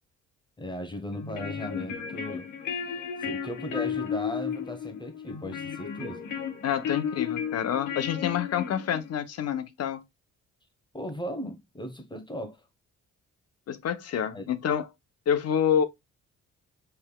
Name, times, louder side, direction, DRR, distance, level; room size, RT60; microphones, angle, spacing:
voice 1, 0.6-2.5 3.2-6.2 10.9-12.6 14.3-14.5, equal, 15° left, 1.0 m, -37 dB
sound 1, 1.1-9.1, left 8 dB, 80° left, 1.2 m, -34 dB
voice 2, 6.6-10.0 13.7-14.9 15.3-15.8, left 8 dB, 55° left, 0.7 m, -27 dB
5.4 x 3.4 x 2.2 m
cardioid pair, 90°, 30 cm